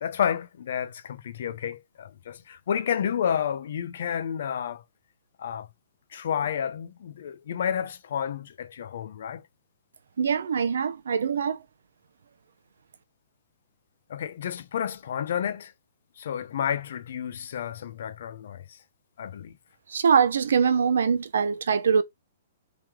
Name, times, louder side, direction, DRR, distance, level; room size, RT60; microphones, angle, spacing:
voice 1, 0.0-4.8 5.4-5.7 6.1-9.4 14.1-15.7 16.2-18.6 19.2-19.5, left 8 dB, 55° left, 0.6 m, -30 dB
voice 2, 10.2-11.6 19.9-22.0, right 6 dB, 85° right, 0.6 m, -23 dB
3.1 x 3.0 x 3.5 m
hypercardioid pair, 170°, 0 cm